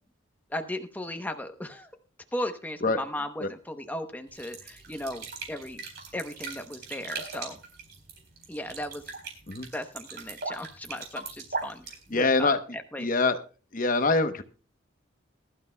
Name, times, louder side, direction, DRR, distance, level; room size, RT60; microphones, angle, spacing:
voice 1, 0.5-1.9 2.3-5.8 6.1-7.6 8.5-9.0 9.7-13.1, left 1 dB, 10° left, 6 dB, 0.8 m, -36 dB
sound 1, 4.3-12.5, right 4 dB, 55° right, 4.1 m, -40 dB
voice 2, 12.1-12.6 13.0-13.4 13.7-14.4, left 3 dB, 45° left, 10 dB, 0.9 m, -24 dB
21.0 x 12.0 x 2.2 m, 0.36 s
head